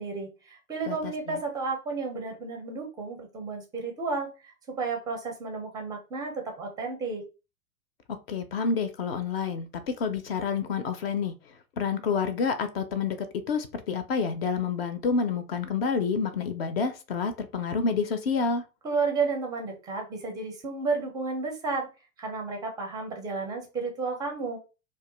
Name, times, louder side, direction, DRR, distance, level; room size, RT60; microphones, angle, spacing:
voice 1, 0.0-7.2 18.8-21.9 22.2-24.6, right 4 dB, 10° right, 0.4 m, -32 dB
voice 2, 0.9-1.4 8.3-11.3 11.8-13.2 13.5-18.6, left 5 dB, 45° left, 0.5 m, -28 dB
2.5 x 2.2 x 3.7 m
figure-of-eight pair, 100°, 44 cm